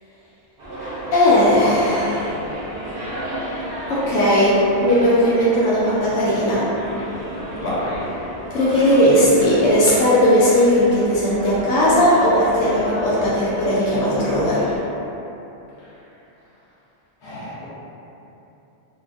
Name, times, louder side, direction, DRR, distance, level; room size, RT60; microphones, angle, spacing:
sound 1, 0.6-14.8, right 1 dB, 60° right, 0.9 m, -32 dB
voice 1, 1.1-2.4 3.9-6.7 8.5-14.6, equal, 80° left, -8 dB, 0.9 m, -17 dB
voice 2, 7.5-8.1 15.8-16.0 17.2-17.7, left 1 dB, 50° left, -10 dB, 0.9 m, -29 dB
3.0 x 2.2 x 2.5 m, 3.0 s
omnidirectional pair, 1.2 m